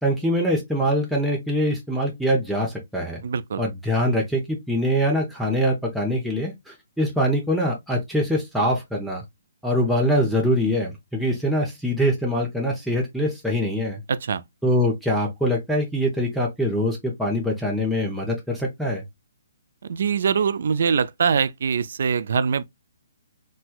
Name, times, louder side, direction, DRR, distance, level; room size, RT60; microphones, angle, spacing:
voice 1, 0.0-3.2 3.6-9.2 9.6-14.0 14.6-19.0, equal, ahead, 0.6 m, -23 dB
voice 2, 3.2-3.6 14.1-14.4 19.9-22.6, right 6 dB, 65° right, 0.3 m, -23 dB
4.2 x 2.2 x 2.3 m
hypercardioid pair, 150°, 0 cm